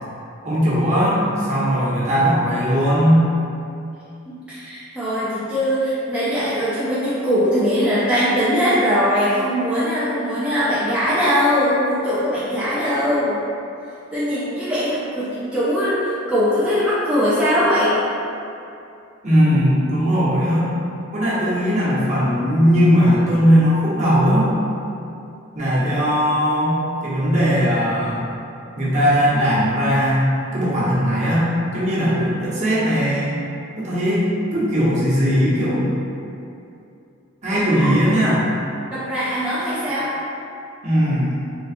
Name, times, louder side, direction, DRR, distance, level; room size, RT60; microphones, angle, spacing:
voice 1, 0.4-3.2 19.2-20.7 21.1-24.5 25.5-28.2 28.8-33.4 33.7-36.0 37.4-38.5 40.8-41.4, equal, 35° right, -9 dB, 0.8 m, -18 dB
voice 2, 4.3-13.4 14.1-18.0 37.5-37.9 38.9-40.1, equal, 5° right, -12 dB, 0.4 m, -21 dB
3.2 x 3.1 x 2.4 m, 2.6 s
head